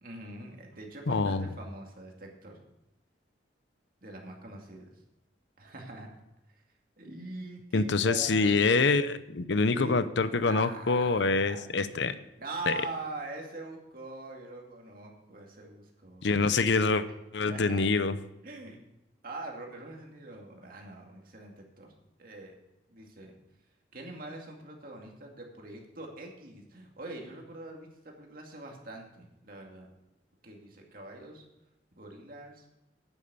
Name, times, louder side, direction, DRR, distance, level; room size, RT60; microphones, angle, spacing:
voice 1, 0.0-2.6 4.0-4.9 5.6-6.1 7.0-8.9 9.6-10.0 10.4-12.0 12.4-16.4 17.5-17.8 18.4-18.8 19.2-21.9 22.2-22.5 22.9-23.3 23.9-29.9 30.4-31.4 31.9-32.7, right 2 dB, 50° right, 1 dB, 2.3 m, -43 dB
voice 2, 1.1-1.5 7.7-12.1 12.7-12.8 16.2-17.0 17.3-18.2, left 4 dB, 75° left, 12 dB, 0.7 m, -25 dB
9.2 x 8.6 x 6.9 m, 0.92 s
head